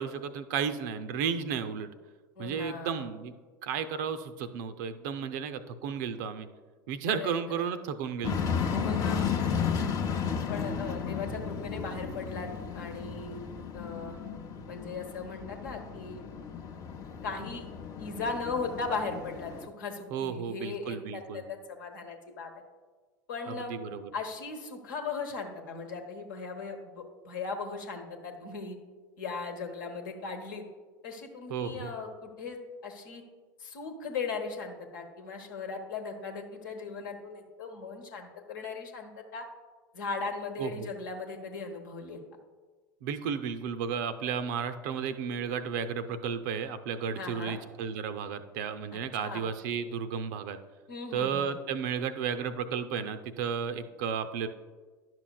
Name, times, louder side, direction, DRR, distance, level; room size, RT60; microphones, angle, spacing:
voice 1, 0.0-1.9 2.4-3.3 3.6-6.5 6.9-8.4 20.1-21.4 23.5-24.1 31.5-31.9 40.6-40.9 43.0-50.6 51.1-54.5, right 7 dB, 55° right, 10 dB, 0.5 m, -33 dB
voice 2, 2.4-3.1 7.1-7.7 8.7-9.3 9.6-9.7 10.5-12.5 12.7-14.1 14.7-16.2 17.2-17.7 18.0-22.5 23.3-23.7 24.1-28.8 29.2-30.6 31.0-33.2 33.6-39.4 39.9-42.2 47.1-47.6 48.9-49.4 50.9-51.5, left 4 dB, 65° left, 4 dB, 1.0 m, -38 dB
sound 1, 8.2-19.7, left 6 dB, 30° left, 0.7 m, -34 dB
11.0 x 6.1 x 2.3 m, 1.4 s
figure-of-eight pair, 80°, 11 cm